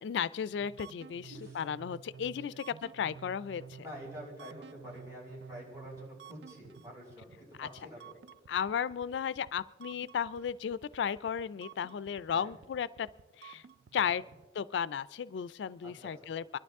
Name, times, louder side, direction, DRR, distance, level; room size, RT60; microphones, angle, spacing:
voice 1, 0.0-3.6 7.6-7.7 8.5-13.1 13.4-13.6 13.9-14.2 14.5-16.6, left 7 dB, 85° left, 19 dB, 0.3 m, -34 dB
sound 1, 0.6-14.5, right 7 dB, 70° right, 0.4 m, -52 dB
voice 2, 1.3-1.6 3.8-8.2 12.3-12.6 14.2-14.3 15.8-16.3, equal, 20° right, -5 dB, 6.0 m, -48 dB
24.5 x 11.5 x 3.6 m, 1.3 s
head